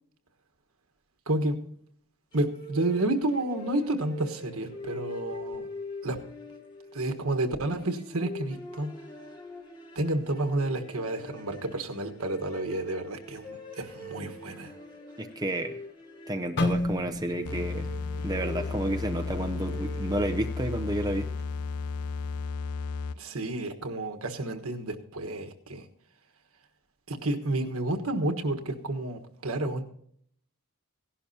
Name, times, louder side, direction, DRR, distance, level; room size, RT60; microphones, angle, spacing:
sound 1, 2.3-20.8, equal, 20° left, 1.9 m, -43 dB
voice 1, 2.3-5.7 6.0-6.2 6.9-8.9 9.9-14.8 23.1-25.9 27.1-29.8, right 1 dB, 75° right, 6 dB, 1.4 m, -30 dB
voice 2, 15.2-15.7 16.3-17.9 18.2-21.3, right 1 dB, 15° right, 6 dB, 0.6 m, -31 dB
sound 2, 16.6-20.6 21.0-21.2 21.9-22.2, left 2 dB, 50° left, 0.7 m, -34 dB
sound 3, 17.4-23.4, left 4 dB, 85° left, 0.5 m, -34 dB
17.0 x 11.5 x 2.8 m, 0.66 s
head